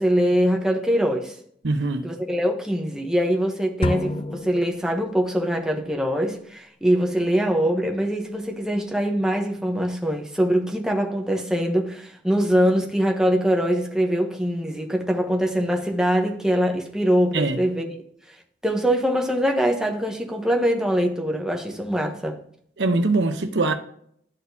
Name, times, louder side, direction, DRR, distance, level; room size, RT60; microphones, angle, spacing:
voice 1, 0.0-1.4 2.0-18.0 18.6-22.4, equal, 5° right, 0.9 m, -23 dB
voice 2, 1.6-2.0 17.3-17.6 22.8-23.7, right 2 dB, 90° right, 0.8 m, -22 dB
sound 1, 3.8-5.5, left 1 dB, 30° left, 0.4 m, -29 dB
12.0 x 4.2 x 2.8 m
head